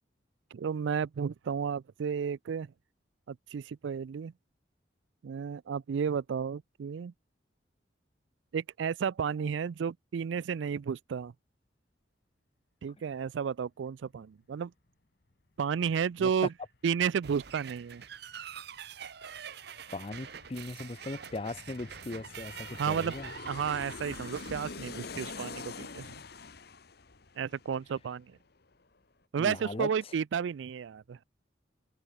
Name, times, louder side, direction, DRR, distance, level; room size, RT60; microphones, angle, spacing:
voice 1, 0.5-2.7 3.3-4.3 5.2-7.1 8.5-11.3 12.8-14.7 15.6-16.5 16.8-18.0 22.8-23.2 23.5-26.2 27.4-28.4 29.3-31.2, right 7 dB, 80° right, 0.4 m, -32 dB
Aircraft, 16.7-16.8 17.1-28.4 28.7-28.8, left 4 dB, 60° left, 1.4 m, -46 dB
sound 1, 17.2-25.6, right 8 dB, 60° right, 0.9 m, -46 dB
voice 2, 19.9-23.3 29.4-29.9, left 2 dB, 30° left, 0.7 m, -39 dB
head